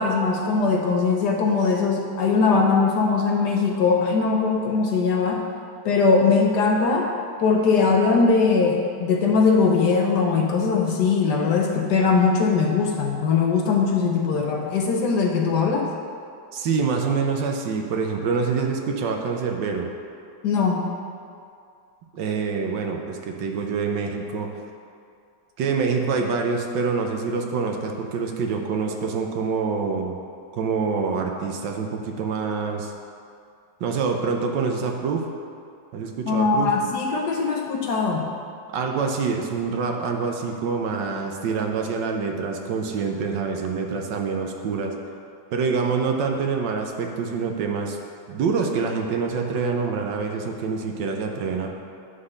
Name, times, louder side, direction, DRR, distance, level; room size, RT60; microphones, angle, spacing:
voice 1, 0.0-5.4 5.8-7.1 7.4-15.9 20.4-20.9 36.3-38.3, left 4 dB, 65° left, 1 dB, 1.1 m, -20 dB
voice 2, 16.5-19.9 22.1-24.5 25.6-30.1 30.5-32.9 33.8-35.3 35.9-36.8 38.7-44.9 45.5-48.0 48.3-51.7, right 5 dB, 70° right, 2 dB, 1.3 m, -26 dB
9.8 x 3.9 x 6.5 m, 2.4 s
omnidirectional pair, 2.2 m